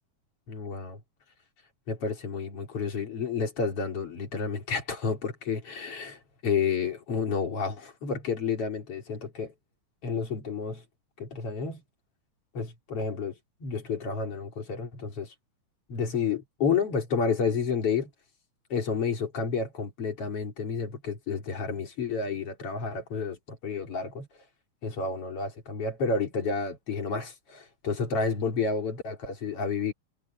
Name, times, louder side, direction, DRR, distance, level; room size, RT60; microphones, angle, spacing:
voice 1, 0.5-1.0 1.9-9.5 10.0-10.8 11.2-11.8 12.5-15.3 15.9-18.1 18.7-24.3 24.8-29.9, left 5 dB, 45° left, 4.2 m, -30 dB
omnidirectional pair, 3.6 m